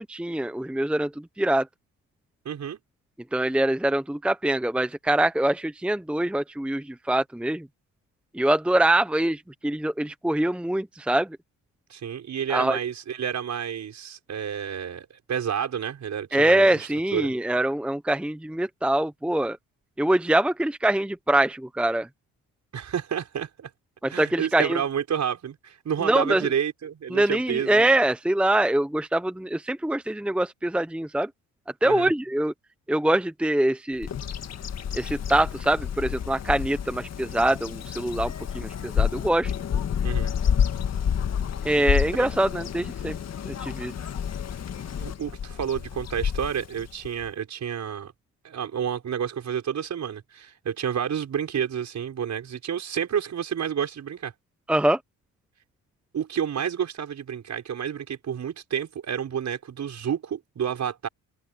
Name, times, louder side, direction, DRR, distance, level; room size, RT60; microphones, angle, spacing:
voice 1, 0.0-1.7 3.3-7.7 8.3-11.4 12.5-12.8 16.3-19.6 20.0-22.1 24.0-24.8 26.0-26.4 27.1-31.3 31.8-32.5 32.9-34.1 34.9-39.5 41.6-43.2 43.5-43.9 54.7-55.0, right 1 dB, 5° right, 1.0 m, -24 dB
voice 2, 2.4-2.8 11.9-17.3 22.7-23.7 24.1-27.7 31.8-32.1 40.0-40.3 42.2-42.3 45.0-48.1 48.4-54.3 56.1-61.1, right 8 dB, 50° right, 6.5 m, -30 dB
Bird vocalization bird call bird song, 34.0-47.3, left 8 dB, 50° left, 1.8 m, -29 dB
open air
cardioid pair, 90°, 35 cm